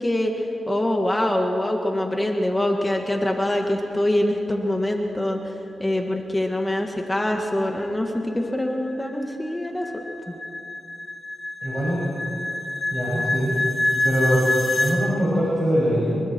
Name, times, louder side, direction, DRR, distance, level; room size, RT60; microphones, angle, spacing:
voice 1, 0.0-5.4 5.8-10.4, left 1 dB, 15° left, 2 dB, 1.9 m, -24 dB
sound 1, 7.8-15.0, left 2 dB, 35° left, 3.4 m, -27 dB
voice 2, 11.6-12.0 12.9-13.5 14.0-14.5 14.8-16.2, equal, 30° right, -7 dB, 6.6 m, -22 dB
25.5 x 22.5 x 4.5 m, 2.7 s
cardioid pair, 95°, 0 cm